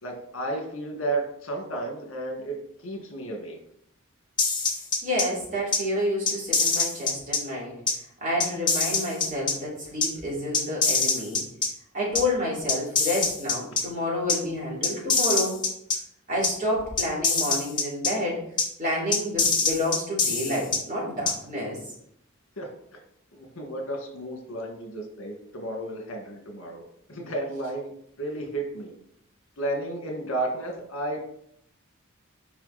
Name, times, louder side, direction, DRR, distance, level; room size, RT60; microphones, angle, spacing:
voice 1, 0.0-2.6 2.8-3.6 22.6-22.7 23.3-26.8 27.1-27.9 28.2-28.9 29.6-31.2, right 2 dB, 65° left, 2 dB, 2.0 m, -32 dB
sound 1, 4.4-5.2 5.7-5.8 6.3-7.4 7.9-8.0 8.4-9.5 10.0-10.1 10.5-11.7 12.1-12.2 12.7-13.8 14.3-14.4 14.8-16.0 16.4-16.5 17.0-18.1 18.6-18.7 19.1-20.8 21.3-21.4, left 5 dB, 20° left, 1.5 m, -24 dB
voice 2, 5.0-7.7 8.2-11.4 11.9-15.6 16.3-18.4 18.8-21.8, left 1 dB, 35° right, -5 dB, 3.3 m, -29 dB
8.8 x 5.4 x 4.2 m, 0.71 s
head